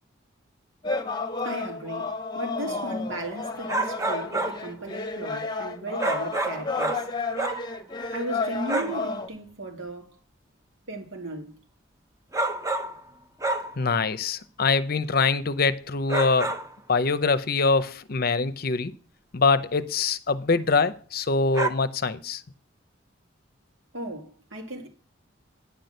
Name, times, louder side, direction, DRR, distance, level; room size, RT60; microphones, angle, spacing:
sound 1, 0.8-9.3, left 3 dB, 20° left, 0.9 m, -32 dB
voice 1, 1.4-2.1 2.3-7.1 8.1-10.2 10.9-11.6 23.9-24.9, right 1 dB, 80° right, 2.2 m, -36 dB
sound 2, 3.7-4.7 6.0-7.7 8.7-9.0 12.3-13.1 13.4-13.8 16.1-16.7 21.5-21.7, right 2 dB, 15° right, 0.8 m, -28 dB
voice 2, 13.8-16.5 16.9-18.9 19.3-22.4, left 4 dB, 50° left, 0.7 m, -24 dB
9.9 x 6.1 x 6.6 m
head